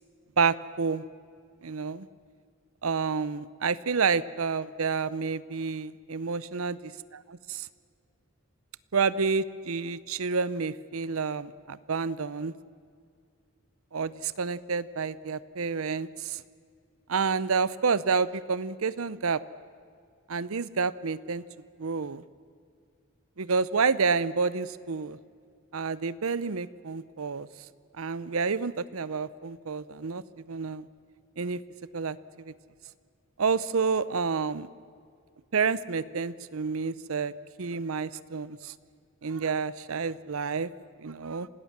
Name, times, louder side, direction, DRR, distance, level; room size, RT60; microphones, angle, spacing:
voice 1, 0.4-1.0 1.6-2.1 2.8-6.7 7.3-7.7 8.9-12.5 13.9-16.4 17.1-19.4 20.3-21.4 21.8-22.2 23.4-25.2 25.7-27.5 27.9-30.2 30.5-30.9 31.4-31.6 31.9-32.5 33.4-34.7 35.5-37.3 37.6-38.7 39.2-40.7 41.0-41.5, right 5 dB, 85° right, 17 dB, 0.7 m, -29 dB
27.0 x 18.5 x 7.4 m, 2.2 s
head